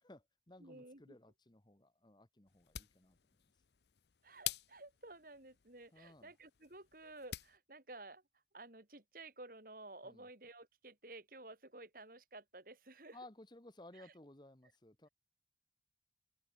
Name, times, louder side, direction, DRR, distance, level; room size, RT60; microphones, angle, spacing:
voice 1, 0.0-3.2 5.9-6.3 10.0-10.2 13.1-15.1, left 1 dB, 25° left, 1.3 m, -58 dB
voice 2, 0.6-1.2 4.2-8.2 8.5-13.2 13.9-14.1, right 2 dB, 50° right, 4.5 m, -54 dB
sound 1, 2.5-7.6, left 13 dB, 70° left, 0.8 m, -48 dB
open air
head